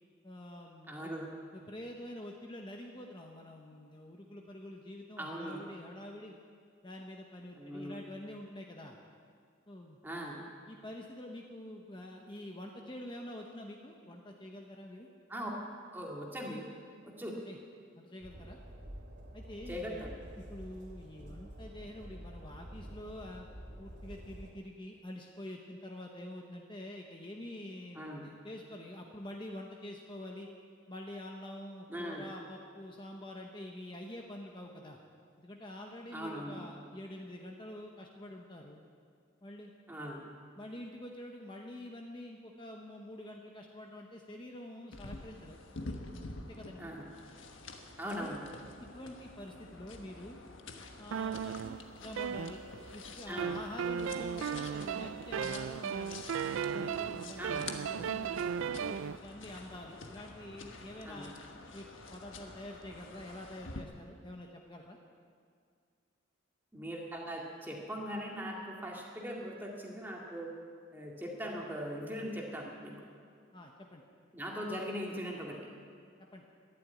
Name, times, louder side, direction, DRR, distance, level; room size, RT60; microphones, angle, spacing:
voice 1, 0.2-1.1 1.5-6.4 6.8-9.0 9.7-10.0 10.7-15.1 17.4-17.6 18.0-18.6 19.3-20.1 20.4-23.5 23.8-30.5 30.9-35.0 35.4-38.8 39.4-39.7 40.6-45.6 46.4-46.9 48.2-48.3 48.8-50.4 51.0-52.6 52.9-56.2 56.5-61.3 61.7-65.0 73.5-74.0 76.3-76.4, left 1 dB, 25° left, 1 dB, 0.9 m, -46 dB
voice 2, 0.9-1.3 5.2-5.6 7.6-8.0 10.0-10.4 15.3-15.5 15.9-16.6 17.0-17.4 19.7-20.1 28.0-28.2 31.9-32.3 36.1-36.6 39.9-40.2 46.8-47.1 48.0-48.4 53.3-53.5 57.4-57.7 61.1-61.3 66.7-70.5 70.9-73.0 74.3-75.6, equal, 10° right, -2 dB, 2.0 m, -40 dB
Train, 18.2-24.5, equal, 60° right, 2.8 m, -48 dB
sound 1, 44.9-63.8, left 3 dB, 70° left, 1.3 m, -48 dB
sound 2, 51.1-53.0 53.4-59.2, right 7 dB, 75° right, 0.3 m, -36 dB
13.0 x 11.0 x 9.4 m, 2.2 s
head